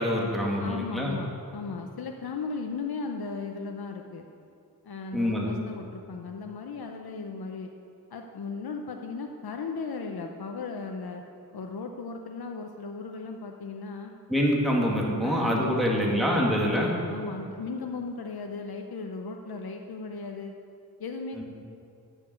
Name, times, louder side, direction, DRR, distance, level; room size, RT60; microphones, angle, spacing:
voice 1, 0.0-1.1 5.1-5.5 14.3-16.9 21.4-21.5, equal, ahead, -3 dB, 2.0 m, -25 dB
voice 2, 0.6-4.3 4.8-7.7 8.1-11.2 11.5-14.1 15.2-16.5 17.1-20.5 21.0-21.4, left 4 dB, 75° left, 3 dB, 0.8 m, -36 dB
9.1 x 7.2 x 8.1 m, 2.5 s
wide cardioid pair, 70°, 37 cm